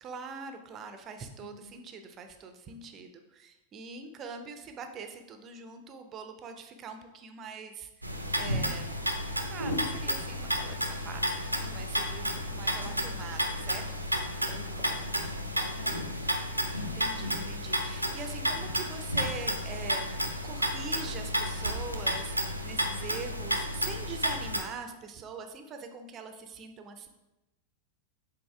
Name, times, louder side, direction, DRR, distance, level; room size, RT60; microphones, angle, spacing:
voice 1, 0.0-9.0 9.5-13.9 16.7-27.1, right 4 dB, 30° right, 7 dB, 0.7 m, -43 dB
voice 2, 1.4-1.7 12.8-13.2 14.5-15.2 15.5-16.3, left 4 dB, 65° left, 4 dB, 0.9 m, -49 dB
sound 1, 8.0-24.6, equal, 90° right, 0.7 m, -32 dB
7.8 x 4.1 x 3.3 m, 0.99 s
figure-of-eight pair, 90°, 0 cm